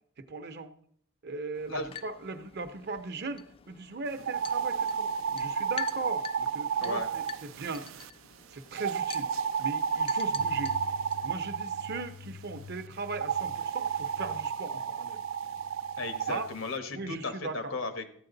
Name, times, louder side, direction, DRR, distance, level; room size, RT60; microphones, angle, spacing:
voice 1, 0.2-0.7 1.2-7.9 8.5-9.3 9.6-10.7 11.2-15.2 16.3-16.5 16.9-17.7, right 3 dB, 55° right, 9 dB, 0.8 m, -38 dB
sound 1, 1.5-11.3, left 8 dB, 30° left, 0.4 m, -46 dB
sound 2, 4.2-8.1 8.7-12.0 13.1-16.3, right 6 dB, 75° right, 0.4 m, -32 dB
voice 2, 6.8-7.1 16.0-18.1, left 3 dB, 90° left, 8 dB, 1.3 m, -35 dB
sound 3, 10.4-17.2, left 6 dB, 65° left, 0.6 m, -50 dB
14.0 x 8.8 x 3.9 m, 0.66 s
head